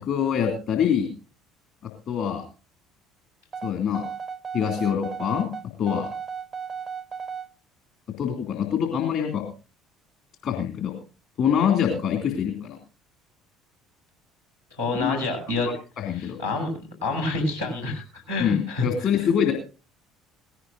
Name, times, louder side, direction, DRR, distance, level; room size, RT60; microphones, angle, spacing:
voice 1, 0.0-1.1 2.1-2.4 3.6-4.1 4.5-5.5 5.8-6.1 8.2-9.4 10.4-10.9 11.4-12.8 14.9-15.2 16.0-16.4 18.4-19.5, left 8 dB, 50° left, 3 dB, 2.6 m, -24 dB
sound 1, 3.5-7.5, right 6 dB, 30° right, 0.6 m, -35 dB
voice 2, 14.8-15.7 16.2-19.3, left 2 dB, 80° left, 0 dB, 6.8 m, -28 dB
18.5 x 16.5 x 2.6 m, 0.34 s
figure-of-eight pair, 60°, 0 cm